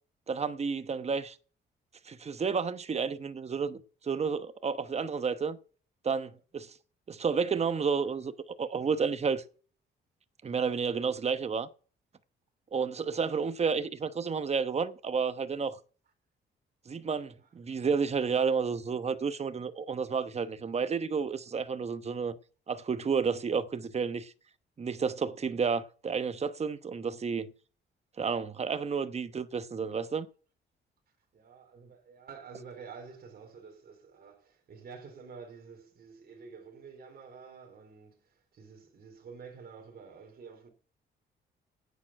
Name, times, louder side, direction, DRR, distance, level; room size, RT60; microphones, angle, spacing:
voice 1, 0.3-1.4 2.1-5.6 6.0-6.7 7.1-8.3 8.6-9.4 10.4-11.7 12.7-15.8 16.9-22.3 22.7-24.3 24.8-27.5 28.2-30.3, right 5 dB, 35° right, 1.0 m, -31 dB
voice 2, 31.3-40.7, right 5 dB, 50° right, 4.0 m, -49 dB
11.0 x 9.0 x 5.8 m
cardioid pair, 90°, 20 cm